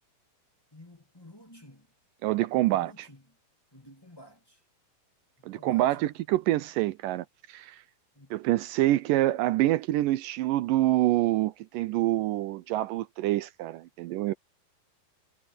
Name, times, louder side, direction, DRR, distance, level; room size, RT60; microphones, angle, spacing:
voice 1, 0.7-1.9 2.5-3.4 3.7-4.6 5.4-6.1 8.1-8.3, left 1 dB, 10° left, 1.7 m, -52 dB
voice 2, 2.2-2.9 5.5-7.8 8.3-14.3, right 15 dB, 80° right, 2.0 m, -26 dB
omnidirectional pair, 4.3 m